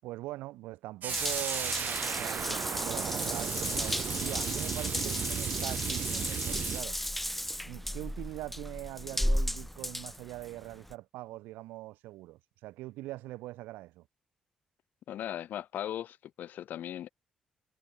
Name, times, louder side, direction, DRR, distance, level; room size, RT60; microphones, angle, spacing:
voice 1, 0.0-7.0 7.6-14.1, right 18 dB, 75° right, 7.3 m, -42 dB
sound 1, 1.0-6.8, right 9 dB, 60° right, 4.2 m, -35 dB
Water tap faucet / Bathtub (filling or washing) / Drip, 1.1-10.9, equal, 5° left, 2.5 m, -34 dB
voice 2, 15.1-17.1, left 11 dB, 65° left, 1.8 m, -38 dB
hypercardioid pair, 40°, 3 cm